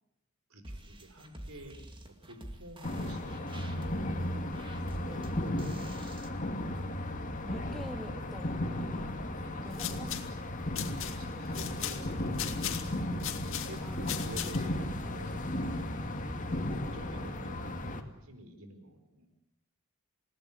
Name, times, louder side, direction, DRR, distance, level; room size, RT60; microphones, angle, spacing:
voice 1, 0.5-1.8 2.3-4.3 4.8-6.2 7.5-7.6 9.2-10.0 11.1-12.6 13.0-15.9 16.7-19.3, right 1 dB, 70° right, 7 dB, 4.7 m, -50 dB
sound 1, 0.6-6.3, right 1 dB, 25° right, 2.4 m, -48 dB
sound 2, 2.8-18.0, left 1 dB, 35° left, 2.1 m, -35 dB
voice 2, 7.4-9.2 9.6-10.2 11.3-11.5 13.8-14.3 17.9-18.0, equal, ahead, 4 dB, 2.3 m, -46 dB
sound 3, 9.6-14.8, left 11 dB, 60° left, 2.4 m, -39 dB
29.0 x 18.0 x 8.6 m, 0.83 s
head